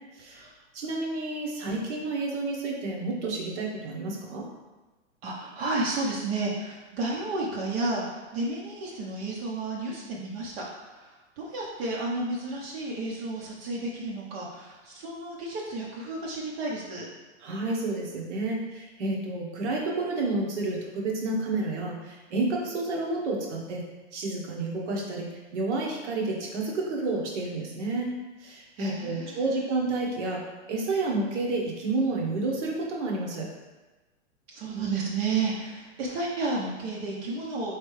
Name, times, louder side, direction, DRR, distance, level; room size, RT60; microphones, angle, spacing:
voice 1, 0.7-4.5 17.4-23.8 24.1-28.1 28.4-30.4 30.7-33.5, right 2 dB, 70° right, -2 dB, 1.3 m, -30 dB
voice 2, 5.2-17.1 28.8-29.4 34.5-37.7, right 3 dB, 55° right, -3 dB, 0.9 m, -32 dB
4.4 x 3.3 x 3.2 m, 1.2 s
hypercardioid pair, 145°, 36 cm